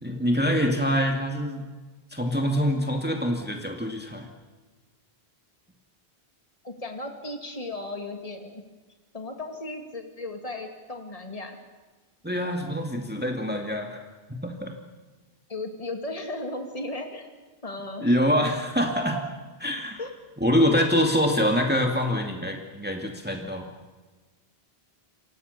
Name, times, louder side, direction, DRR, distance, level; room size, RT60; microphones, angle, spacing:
voice 1, 0.0-1.6 2.1-4.3 12.2-14.0 14.4-14.7 18.0-19.2 19.6-20.0 20.4-23.7, equal, 10° right, 2 dB, 2.4 m, -25 dB
voice 2, 6.6-8.6 9.1-11.6 15.5-17.3 17.6-18.2 20.0-20.1, left 2 dB, 35° left, 4 dB, 2.7 m, -35 dB
29.0 x 25.0 x 6.9 m, 1.3 s
omnidirectional pair, 1.0 m